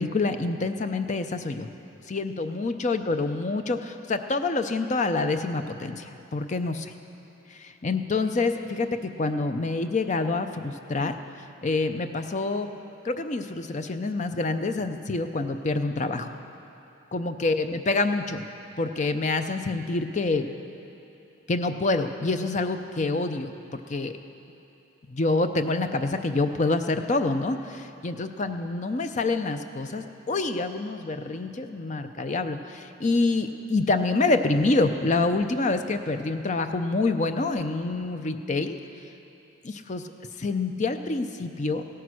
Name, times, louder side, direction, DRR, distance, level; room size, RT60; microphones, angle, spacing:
voice 1, 0.0-1.7 2.1-6.9 7.5-11.1 11.6-12.7 13.0-16.3 17.1-18.4 18.8-20.5 21.5-24.1 25.1-38.8 39.6-40.0 40.4-41.8, left 3 dB, 35° left, 8 dB, 0.5 m, -27 dB
16.0 x 9.4 x 6.2 m, 3.0 s
head